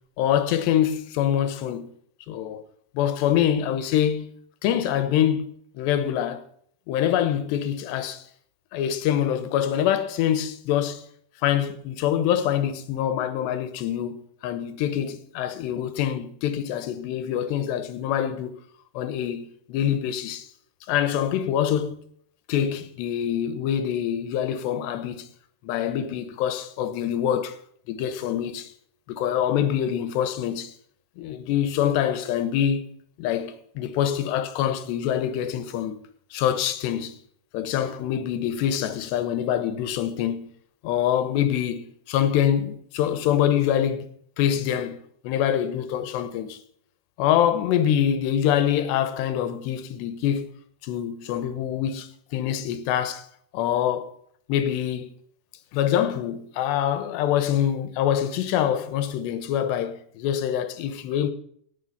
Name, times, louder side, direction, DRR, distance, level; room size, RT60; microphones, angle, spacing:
voice 1, 0.2-1.9 2.3-2.6 2.9-4.3 4.6-6.5 6.9-8.2 8.7-11.0 11.4-18.6 18.9-20.5 20.9-22.0 22.5-25.3 25.6-27.6 27.9-28.7 29.1-30.7 31.2-32.8 33.2-36.0 36.3-37.2 37.5-40.5 40.8-44.1 44.4-45.0 45.2-46.6 47.2-50.4 50.8-53.3 53.5-54.1 54.5-55.1 55.7-61.3, left 10 dB, 85° left, 3.2 m, -25 dB
17.5 x 7.3 x 5.6 m
omnidirectional pair, 4.9 m